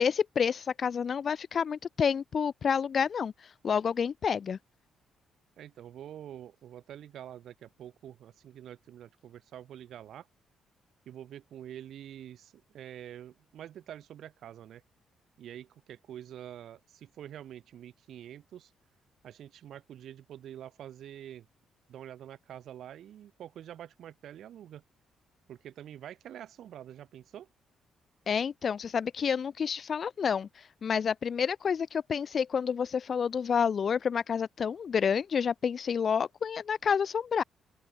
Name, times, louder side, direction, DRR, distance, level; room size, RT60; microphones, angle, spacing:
voice 1, 0.0-3.3 3.6-4.6 28.3-37.4, left 7 dB, 50° left, 1.0 m, -29 dB
voice 2, 5.6-10.3 11.1-14.8 15.4-18.7 19.2-21.5 21.9-24.8 25.5-27.5, right 10 dB, 70° right, 2.6 m, -46 dB
open air
cardioid pair, 90°, 0 cm